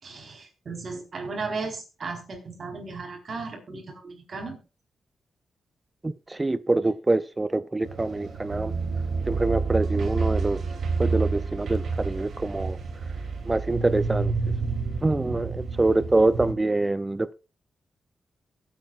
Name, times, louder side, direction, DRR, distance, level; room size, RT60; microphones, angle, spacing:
voice 1, 0.0-4.6, right 4 dB, 50° right, 4.3 m, -35 dB
voice 2, 6.0-8.7 9.3-10.6 11.0-12.8 13.5-14.3 15.0-17.3, right 2 dB, 20° right, 0.5 m, -25 dB
sound 1, 7.8-16.5, right 4 dB, 65° right, 2.9 m, -29 dB
23.0 x 8.5 x 2.5 m
cardioid pair, 85°, 0 cm